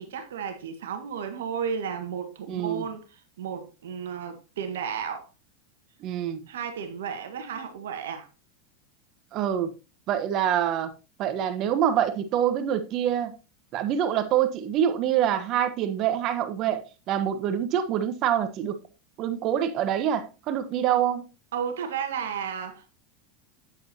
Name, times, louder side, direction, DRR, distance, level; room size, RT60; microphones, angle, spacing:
voice 1, 0.0-5.3 6.5-8.3 21.5-22.9, right 7 dB, 80° right, 1.6 m, -33 dB
voice 2, 2.5-2.9 6.0-6.4 9.3-9.7 10.1-10.9 11.2-13.3 13.7-18.8 19.2-21.2, right 10 dB, 50° right, 1.3 m, -26 dB
8.8 x 7.9 x 2.8 m
hypercardioid pair, 100°, 0 cm